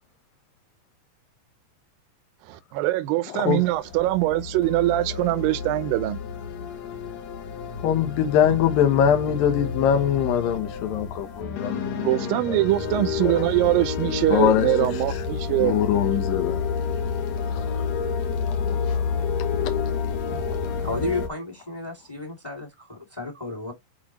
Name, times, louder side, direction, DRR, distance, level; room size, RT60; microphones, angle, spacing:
voice 1, 2.4-6.2 8.5-8.6 12.0-15.9, right 17 dB, 85° right, 2.4 m, -23 dB
sound 1, 3.5-21.3, left 6 dB, 60° left, 2.2 m, -29 dB
voice 2, 7.8-12.6 13.2-13.3 14.3-14.7 15.6-16.7 17.5-17.8 18.5-19.3, left 9 dB, 80° left, 2.8 m, -23 dB
voice 3, 20.8-23.7, left 2 dB, 10° left, 1.3 m, -32 dB
8.0 x 4.4 x 3.0 m
omnidirectional pair, 4.1 m